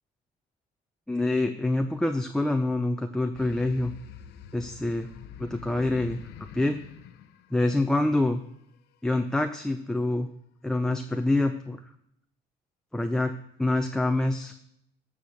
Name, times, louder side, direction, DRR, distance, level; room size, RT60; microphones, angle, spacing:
voice 1, 1.1-3.9 4.5-5.1 5.4-6.2 6.5-6.8 7.5-8.4 9.0-10.3 10.6-11.8 12.9-14.5, left 2 dB, 5° left, 5 dB, 0.6 m, -26 dB
sound 1, 3.3-8.3, left 8 dB, 80° left, 0.8 m, -46 dB
12.5 x 5.0 x 7.1 m, 0.75 s
cardioid pair, 110°, 17 cm